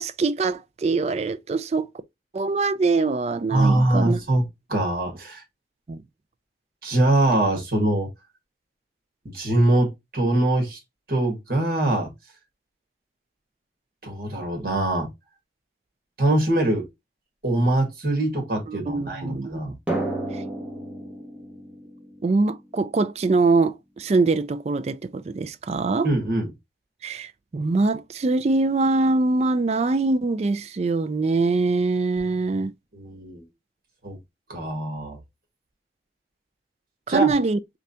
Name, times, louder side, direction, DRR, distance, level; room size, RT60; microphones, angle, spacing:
voice 1, 0.0-1.9 2.3-4.2 5.9-6.0 18.7-19.5 20.3-20.4 22.2-26.1 27.0-32.7 37.1-37.6, right 3 dB, 35° right, 0.3 m, -23 dB
voice 2, 3.5-4.4 4.7-5.4 6.8-8.1 9.3-9.9 10.1-10.8 11.1-12.1 14.0-15.1 16.2-16.8 17.4-19.8 26.0-26.5 32.9-33.4 34.0-34.2 34.5-35.2 37.1-37.3, right 1 dB, 55° right, 1.9 m, -22 dB
Drum, 19.9-23.2, right 1 dB, 5° right, 1.2 m, -32 dB
3.8 x 3.4 x 2.6 m
head